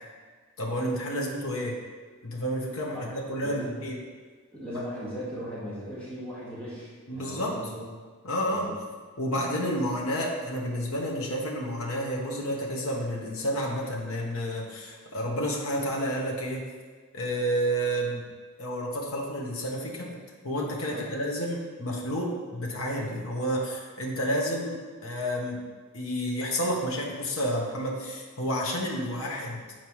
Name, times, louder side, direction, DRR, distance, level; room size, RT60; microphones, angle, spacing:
voice 1, 0.6-1.8 2.2-4.0 4.7-4.9 7.1-7.5 8.2-8.7 9.2-16.6 17.1-18.3 18.6-20.2 20.4-25.6 25.9-29.6, equal, 70° left, -2 dB, 1.2 m, -30 dB
voice 2, 3.4-3.8 4.5-7.8 8.5-8.8 20.9-21.1, equal, 5° left, -11 dB, 1.8 m, -38 dB
8.9 x 4.5 x 3.1 m, 1.5 s
head